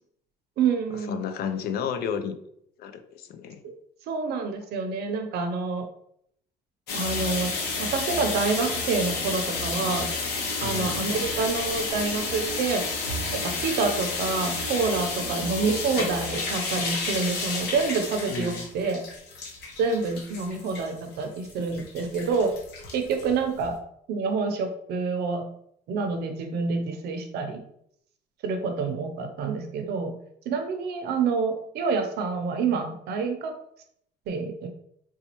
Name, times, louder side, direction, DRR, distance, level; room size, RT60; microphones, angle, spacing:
voice 1, 0.6-1.2 4.1-5.9 6.9-10.1 10.6-12.8 13.4-19.0 19.8-22.5 22.9-23.8 24.1-25.4 25.9-27.6 28.4-30.1 30.5-33.5 34.3-34.7, right 4 dB, 75° right, 6 dB, 0.6 m, -27 dB
voice 2, 1.1-2.4 2.8-3.6 10.6-11.0 18.3-18.7, left 7 dB, 65° left, 8 dB, 0.5 m, -32 dB
sound 1, 6.9-23.7, left 3 dB, 85° left, 0.8 m, -31 dB
4.0 x 2.3 x 2.9 m, 0.71 s
cardioid pair, 110°, 17 cm